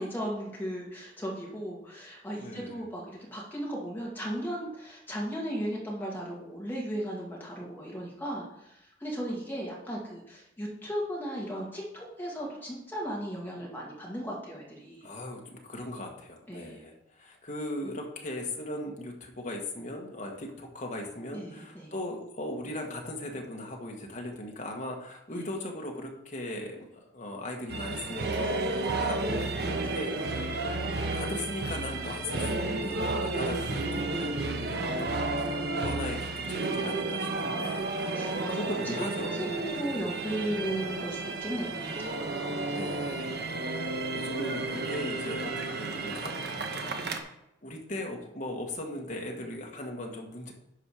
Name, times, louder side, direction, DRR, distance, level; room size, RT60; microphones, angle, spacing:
voice 1, 0.0-8.7 9.0-15.1 16.5-16.8 21.3-21.9 25.3-25.4 30.2-30.3 34.0-34.3 38.1-39.1 39.4-42.4 43.3-43.5 47.0-47.2, equal, 10° left, -4 dB, 2.2 m, -36 dB
voice 2, 2.4-2.8 15.0-30.6 31.1-40.0 42.6-43.6 44.1-47.3 47.6-50.5, left 1 dB, 40° left, 1 dB, 1.5 m, -39 dB
sound 1, 27.7-47.2, right 2 dB, 55° right, 0.9 m, -32 dB
11.5 x 4.4 x 4.9 m, 0.86 s
head